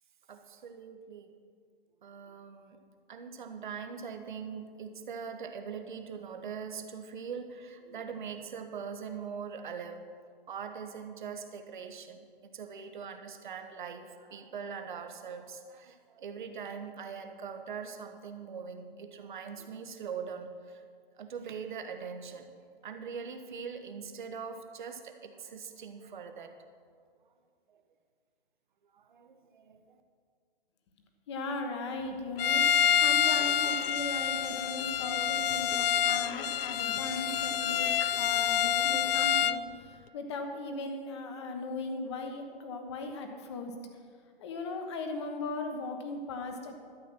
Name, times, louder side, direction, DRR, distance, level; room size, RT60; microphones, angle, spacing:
voice 1, 0.3-1.3 2.0-2.8 3.1-10.1 10.5-20.8 21.2-26.7 27.7-27.8 28.9-30.0, right 6 dB, 55° right, 7 dB, 1.3 m, -42 dB
voice 2, 31.3-32.6 33.0-43.7 44.4-46.8, left 2 dB, 30° left, 5 dB, 1.2 m, -38 dB
Bowed string instrument, 32.4-39.6, left 8 dB, 80° left, 0.5 m, -27 dB
12.5 x 8.2 x 6.1 m, 2.1 s
hypercardioid pair, 170°, 29 cm